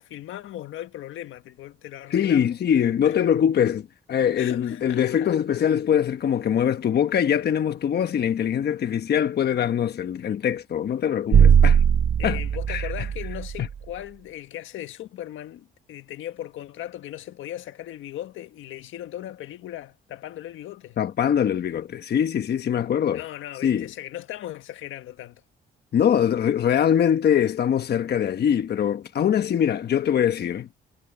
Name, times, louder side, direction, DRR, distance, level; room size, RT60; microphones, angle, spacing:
voice 1, 0.0-2.5 3.0-3.2 4.4-5.4 11.3-11.4 12.2-21.0 23.1-25.4, left 13 dB, 80° left, 1.6 m, -38 dB
voice 2, 2.1-11.8 12.2-12.4 12.7-12.9 13.6-13.7 21.0-23.2 23.6-23.9 25.9-30.7, left 9 dB, 55° left, 1.1 m, -23 dB
sound 1, 11.3-13.8, right 8 dB, 40° right, 0.6 m, -19 dB
cardioid pair, 90°, 20 cm